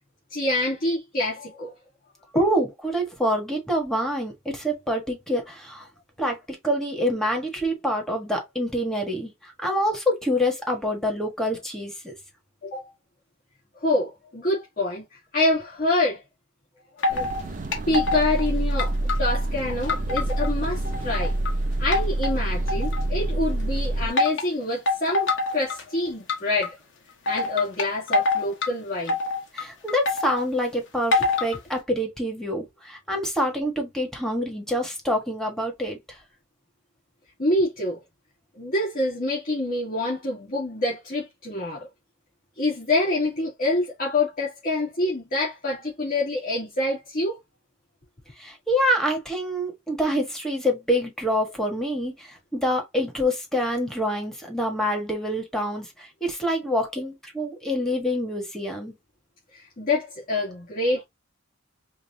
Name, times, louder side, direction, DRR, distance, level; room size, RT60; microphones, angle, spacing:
voice 1, 0.3-1.7 2.3-2.5 12.6-12.9 13.8-15.0 15.3-16.2 17.0-17.3 17.9-21.3 21.8-26.7 27.3-29.2 37.4-38.0 38.6-41.9 42.6-47.4 59.5-61.0, left 2 dB, 45° left, 2.2 m, -26 dB
voice 2, 2.3-5.9 6.2-6.4 6.6-12.1 29.5-36.2 48.4-58.9, equal, ahead, 1.4 m, -26 dB
sound 1, 17.0-17.4 17.7-18.4 18.8-20.5 20.8-21.5 21.9-23.2 24.2-24.4 24.9-25.8 26.3-26.7 27.3-28.7 29.1-30.4 31.1-31.6, left 3 dB, 60° left, 1.2 m, -25 dB
sound 2, 17.1-24.1, right 1 dB, 40° right, 0.5 m, -27 dB
5.2 x 2.5 x 2.7 m
head